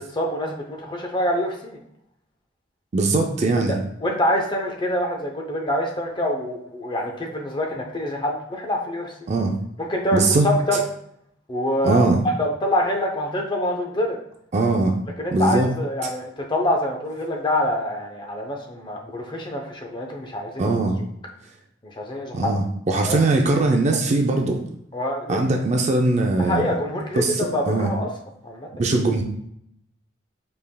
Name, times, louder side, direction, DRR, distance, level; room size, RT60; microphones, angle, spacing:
voice 1, 0.1-1.8 3.7-9.3 9.8-10.8 11.5-12.0 12.4-14.2 15.2-20.8 21.8-22.5 22.9-23.2 24.9-25.4 26.4-28.1 28.4-28.7, left 1 dB, 25° left, 1 dB, 0.6 m, -26 dB
voice 2, 2.9-3.8 9.3-9.6 10.1-10.5 11.8-12.2 14.5-15.0 15.3-15.7 20.6-21.0 22.3-24.6 25.3-26.6 27.2-27.9 28.8-29.2, right 2 dB, 35° right, 2 dB, 0.4 m, -20 dB
5.5 x 3.4 x 2.2 m, 0.74 s
head